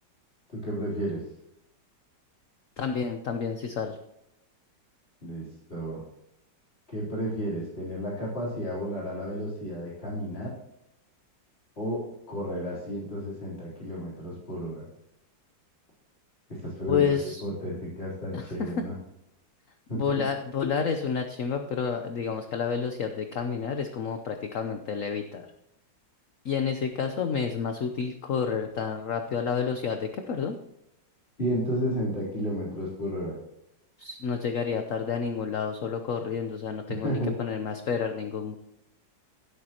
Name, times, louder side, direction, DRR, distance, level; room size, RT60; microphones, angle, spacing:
voice 1, 0.5-1.2 5.2-6.0 6.9-10.5 11.8-12.0 12.3-14.9 16.6-17.2 17.4-18.9 19.9-20.0 31.4-33.3 37.0-37.3, equal, 35° left, -7 dB, 3.9 m, -32 dB
voice 2, 2.8-4.0 16.9-17.4 18.3-18.8 19.9-25.5 26.4-30.6 34.0-38.6, left 6 dB, 55° left, 6 dB, 1.1 m, -30 dB
16.5 x 8.3 x 3.0 m, 0.82 s
omnidirectional pair, 2.0 m